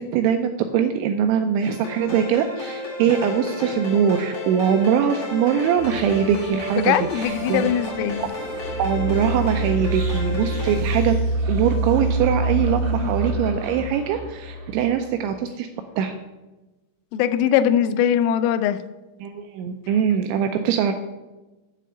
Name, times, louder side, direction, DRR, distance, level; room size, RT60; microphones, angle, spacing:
voice 1, 0.0-7.7 8.2-8.3 8.8-11.1 11.5-15.7 16.0-16.2 19.2-20.9, right 8 dB, 85° right, 6 dB, 2.7 m, -22 dB
sound 1, 1.6-10.8, left 2 dB, 50° left, 2.5 m, -33 dB
sound 2, 5.8-15.0, right 2 dB, 65° right, 1.9 m, -27 dB
voice 2, 6.8-8.2 13.0-13.1 17.1-18.8, left 10 dB, 85° left, 11 dB, 3.2 m, -21 dB
7.8 x 6.4 x 7.6 m, 1.1 s
omnidirectional pair, 5.8 m